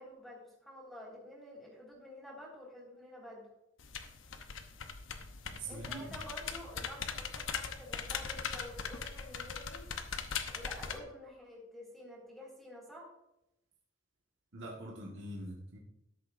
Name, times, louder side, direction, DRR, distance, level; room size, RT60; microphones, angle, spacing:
voice 1, 0.0-3.5 5.6-9.9 10.5-13.1, left 1 dB, ahead, -4 dB, 3.3 m, -49 dB
sound 1, 3.8-11.0, left 6 dB, 80° left, 0.9 m, -40 dB
voice 2, 5.4-6.1 14.5-15.8, right 1 dB, 80° right, -3 dB, 1.6 m, -44 dB
13.0 x 10.5 x 2.6 m, 0.84 s
head